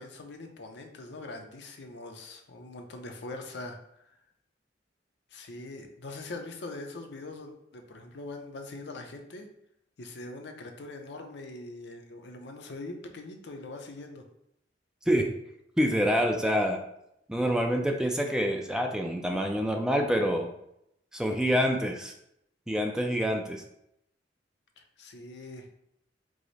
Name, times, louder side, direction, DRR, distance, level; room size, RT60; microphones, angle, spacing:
voice 1, 0.0-3.8 4.0-4.2 5.3-9.5 10.0-14.2 24.8-25.7, left 2 dB, 70° left, 4 dB, 0.6 m, -42 dB
voice 2, 15.8-16.8 17.3-20.5 21.1-22.1 22.7-23.6, equal, 5° right, 3 dB, 0.3 m, -26 dB
4.8 x 2.0 x 4.0 m, 0.78 s
head